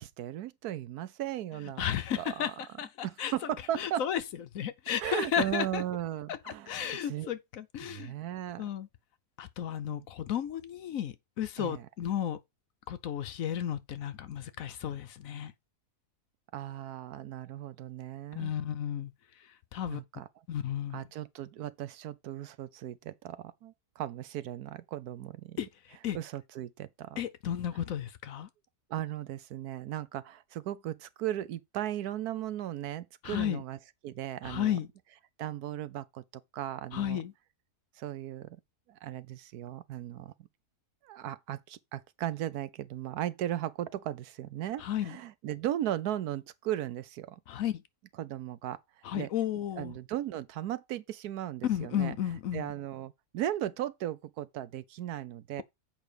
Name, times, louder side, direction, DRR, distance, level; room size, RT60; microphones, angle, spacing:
voice 1, 0.0-1.9 2.2-2.5 3.0-4.0 5.0-7.3 7.8-8.6 9.9-10.1 11.6-11.9 16.5-18.5 19.9-20.3 20.9-25.6 26.1-27.2 28.9-33.8 34.0-34.8 35.4-36.2 36.5-37.2 38.0-38.6 38.9-40.3 41.0-47.4 48.2-48.8 49.1-49.3 49.8-52.2 52.5-55.6, right 12 dB, 80° right, 1.2 m, -37 dB
voice 2, 1.8-3.3 3.8-4.2 4.5-5.8 6.3-6.4 6.7-8.1 8.6-8.9 9.4-12.4 12.9-15.5 18.3-19.1 19.7-20.0 20.5-21.0 25.6-25.7 26.0-26.2 27.2-28.5 33.2-33.6 34.4-34.9 36.9-37.3 44.8-45.2 47.5-47.8 49.0-49.9 51.6-52.7, left 10 dB, 65° left, 1.1 m, -33 dB
7.7 x 5.2 x 4.9 m
omnidirectional pair, 1.7 m